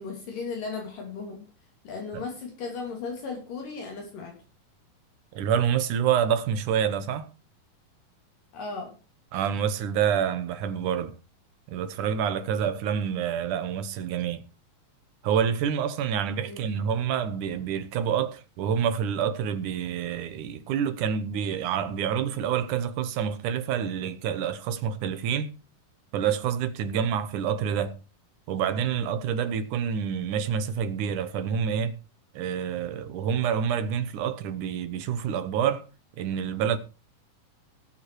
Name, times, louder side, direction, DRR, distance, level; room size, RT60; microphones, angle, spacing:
voice 1, 0.0-1.4 1.8-4.4 8.5-8.9 16.5-16.8, left 4 dB, 65° left, 4.2 m, -36 dB
voice 2, 5.3-7.3 9.3-11.2 11.7-14.4 15.2-25.5 26.1-27.9 28.5-31.9 32.3-35.9 36.2-36.8, right 8 dB, 65° right, 2.4 m, -27 dB
18.0 x 7.2 x 4.7 m
omnidirectional pair, 4.1 m